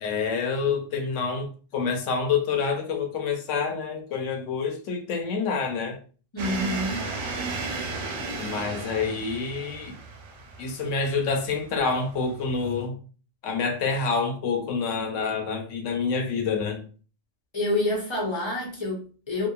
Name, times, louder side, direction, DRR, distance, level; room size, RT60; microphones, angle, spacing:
voice 1, 0.0-6.0 8.3-9.9 10.6-13.0 13.4-16.9, left 5 dB, 75° left, 0.9 m, -27 dB
voice 2, 6.3-7.1 17.5-19.5, left 1 dB, 30° left, 0.6 m, -28 dB
sound 1, 6.4-12.8, right 3 dB, 85° right, 1.0 m, -35 dB
2.9 x 2.2 x 2.2 m
omnidirectional pair, 1.4 m